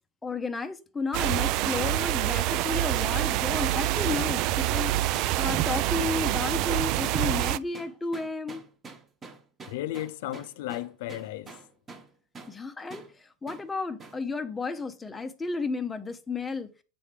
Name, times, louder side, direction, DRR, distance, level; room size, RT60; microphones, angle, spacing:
voice 1, 0.2-4.9 5.4-8.6 12.5-16.7, left 4 dB, 15° left, 0.7 m, -33 dB
sound 1, 1.1-7.6, right 15 dB, 50° right, 0.3 m, -26 dB
sound 2, 2.9-12.1 12.4-12.6 12.9-13.1 13.5-13.7 14.0-14.2, right 4 dB, 20° right, 1.1 m, -46 dB
voice 2, 9.7-11.6, left 14 dB, 65° left, 0.5 m, -35 dB
7.7 x 3.3 x 5.0 m
hypercardioid pair, 115°, 0 cm